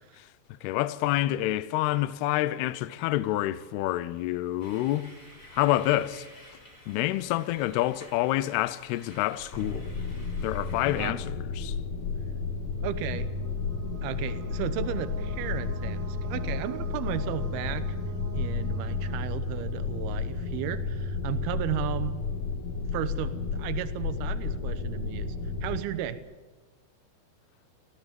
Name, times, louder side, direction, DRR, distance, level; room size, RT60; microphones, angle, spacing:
voice 1, 0.6-5.1 5.5-6.3 6.9-9.9 10.4-11.7, left 15 dB, 80° left, 2.4 m, -27 dB
sound 1, 4.6-11.1, left 1 dB, 15° left, 5.7 m, -51 dB
sound 2, 9.5-25.8, left 4 dB, 50° left, 2.5 m, -32 dB
sound 3, 12.7-20.4, right 7 dB, 45° right, 2.3 m, -47 dB
voice 2, 12.8-13.3 14.0-17.8 18.3-22.2 22.9-25.4 25.6-26.2, right 11 dB, 75° right, 2.4 m, -34 dB
19.0 x 16.0 x 9.2 m
omnidirectional pair, 5.5 m